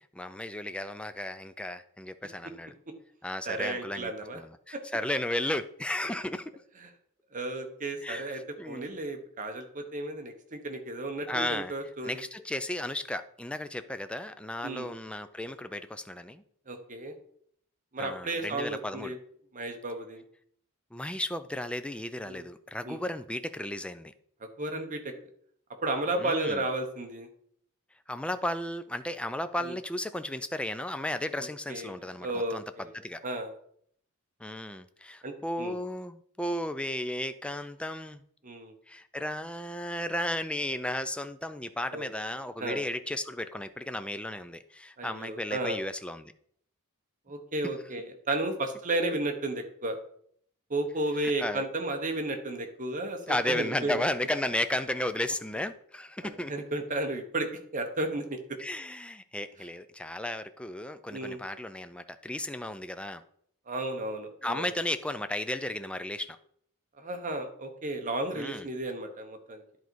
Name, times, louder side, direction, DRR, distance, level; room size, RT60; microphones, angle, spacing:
voice 1, 0.1-2.7 3.2-6.5 8.0-8.9 11.3-11.7 12.0-16.4 18.0-19.1 20.9-24.1 26.2-26.6 28.1-32.6 32.9-33.2 34.4-38.2 38.9-46.3 51.2-51.7 53.3-56.5 58.6-63.2 64.4-66.4 68.4-68.7, left 1 dB, 5° left, 10 dB, 0.4 m, -34 dB
voice 2, 3.4-4.4 4.7-4.8 6.8-6.9 7.3-8.4 8.7-12.2 14.6-14.9 16.7-17.1 17.9-19.2 19.5-20.2 22.3-22.4 22.8-23.0 24.6-25.1 25.8-27.3 29.6-29.8 31.4-32.9 33.2-33.5 35.2-35.7 38.4-38.7 41.9-42.1 42.6-42.8 45.0-45.8 47.3-50.0 50.7-54.0 56.2-58.6 61.1-61.4 63.7-64.7 67.0-69.6, right 2 dB, 35° right, 5 dB, 1.0 m, -33 dB
10.5 x 4.0 x 4.6 m, 0.65 s
head